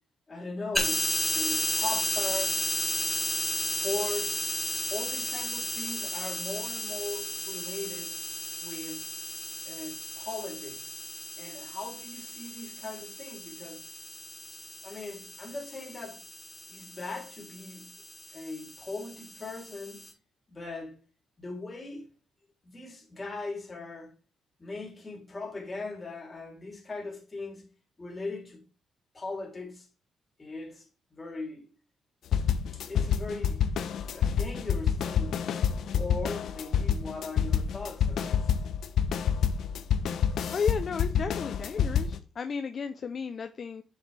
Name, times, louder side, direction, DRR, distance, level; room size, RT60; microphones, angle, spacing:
voice 1, 0.3-1.1 1.3-2.7 3.6-4.5 4.9-8.2 8.6-9.1 9.6-11.0 11.4-13.8 14.5-16.2 16.7-17.9 18.3-20.1 20.5-21.0 21.4-22.0 22.6-24.1 24.6-27.7 28.0-28.7 29.1-29.9 30.4-31.7 32.7-33.7 34.1-35.4 35.9-38.5, left 3 dB, 25° left, 3.2 m, -39 dB
sound 1, 0.7-20.1, left 1 dB, ahead, 2.4 m, -34 dB
sound 2, 32.3-42.2, left 8 dB, 70° left, 0.9 m, -27 dB
voice 2, 40.5-43.8, left 6 dB, 45° left, 0.6 m, -33 dB
7.1 x 6.7 x 3.3 m
cardioid pair, 90°, 0 cm